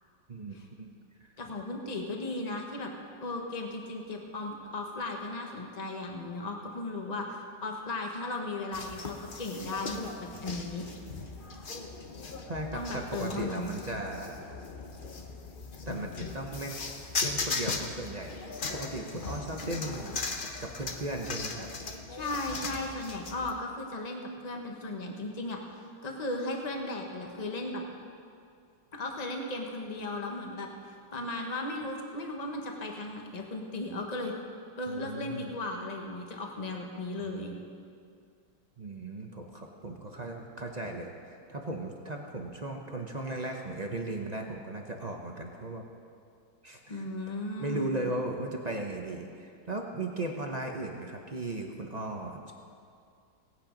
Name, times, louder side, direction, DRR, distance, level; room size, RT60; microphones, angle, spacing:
voice 1, 0.3-0.9 1.2-1.3 12.5-14.5 15.9-16.9 17.2-18.4 18.7-20.2 20.6-21.7 34.9-35.6 37.2-37.6 38.8-45.8 46.6-52.5, right 2 dB, 35° right, 1 dB, 0.7 m, -37 dB
voice 2, 1.4-2.9 3.2-10.8 12.7-13.7 21.9-25.6 26.0-27.8 28.9-34.3 34.8-37.5 46.9-47.9, left 2 dB, 25° left, 2 dB, 1.2 m, -36 dB
sound 1, 8.7-23.5, left 4 dB, 40° left, 0.7 m, -38 dB
18.0 x 8.7 x 5.2 m, 2.4 s
omnidirectional pair, 1.9 m